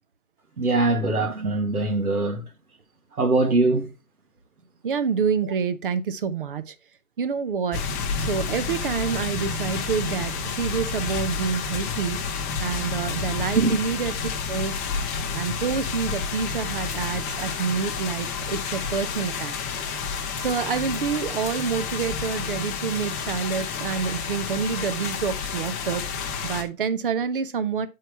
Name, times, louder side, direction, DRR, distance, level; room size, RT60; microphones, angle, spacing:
voice 1, 0.6-2.4 3.1-3.9 5.4-5.5 13.5-13.8, right 2 dB, 80° right, 1.7 m, -22 dB
voice 2, 4.8-6.7 7.2-7.8 8.3-10.3 10.6-12.2 12.6-14.1 14.5-14.8 15.3-19.5 20.4-26.0 26.4-27.9, right 6 dB, 35° right, 0.7 m, -27 dB
sound 1, 7.7-26.6, left 5 dB, 10° left, 0.7 m, -30 dB
7.6 x 4.7 x 4.5 m
figure-of-eight pair, 140°, 44 cm